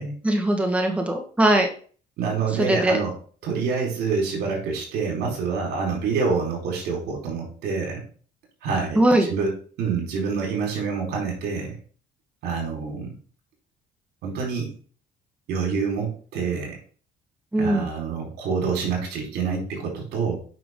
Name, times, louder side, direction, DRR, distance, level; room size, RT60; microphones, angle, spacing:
voice 1, 0.2-1.7 2.6-3.0 8.9-9.3 17.5-17.9, right 1 dB, 5° right, 3 dB, 1.5 m, -20 dB
voice 2, 2.2-3.1 3.4-8.0 8.6-9.5 9.8-11.8 12.4-13.2 14.2-14.7 15.5-16.8 17.6-20.4, right 5 dB, 80° right, 0 dB, 4.4 m, -27 dB
9.2 x 5.8 x 3.8 m, 0.42 s
cardioid pair, 110°, 17 cm